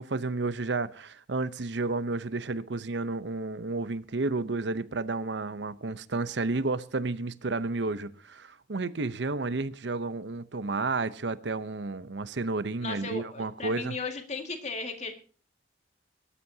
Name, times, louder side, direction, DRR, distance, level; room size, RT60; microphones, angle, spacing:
voice 1, 0.0-14.0, right 3 dB, 70° right, 0.8 m, -31 dB
voice 2, 12.8-15.1, left 3 dB, 40° left, 2.1 m, -35 dB
22.0 x 12.5 x 2.8 m
head